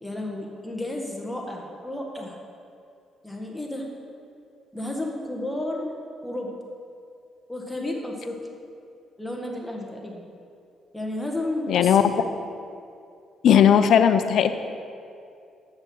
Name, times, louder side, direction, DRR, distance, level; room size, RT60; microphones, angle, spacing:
voice 1, 0.0-2.4 3.2-3.8 4.7-6.5 7.5-8.3 9.2-10.2 10.9-12.1, left 1 dB, 5° left, 0 dB, 1.5 m, -32 dB
voice 2, 11.7-12.0 13.4-14.6, left 9 dB, 70° left, 10 dB, 0.5 m, -17 dB
7.9 x 6.5 x 6.2 m, 2.4 s
cardioid pair, 90°, 0 cm